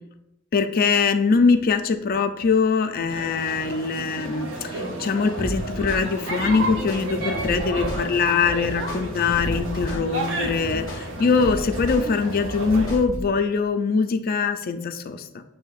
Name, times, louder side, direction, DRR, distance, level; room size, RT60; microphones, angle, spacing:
voice 1, 0.5-15.4, left 5 dB, 45° left, 8 dB, 0.4 m, -22 dB
sound 1, 3.1-13.0, right 2 dB, 65° right, 0.8 m, -32 dB
sound 2, 5.4-13.3, left 1 dB, 20° left, 1.3 m, -33 dB
8.0 x 2.7 x 2.4 m, 0.89 s
head